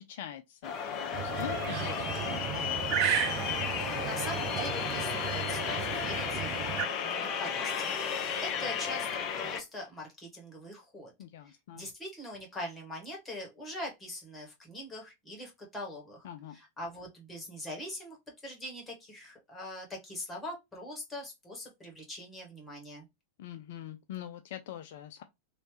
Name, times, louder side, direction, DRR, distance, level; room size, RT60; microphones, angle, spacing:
voice 1, 0.0-2.9 11.2-11.9 16.2-16.6 23.4-25.2, left 11 dB, 55° left, 0.3 m, -44 dB
sound 1, 0.6-9.6, left 7 dB, 35° left, 0.7 m, -34 dB
sound 2, 1.1-6.9, right 10 dB, 40° right, 0.5 m, -34 dB
voice 2, 3.8-9.1 9.3-11.1 11.4-18.2 18.4-23.0, left 1 dB, 15° left, 1.6 m, -42 dB
3.0 x 2.8 x 3.1 m
figure-of-eight pair, 90°, 0 cm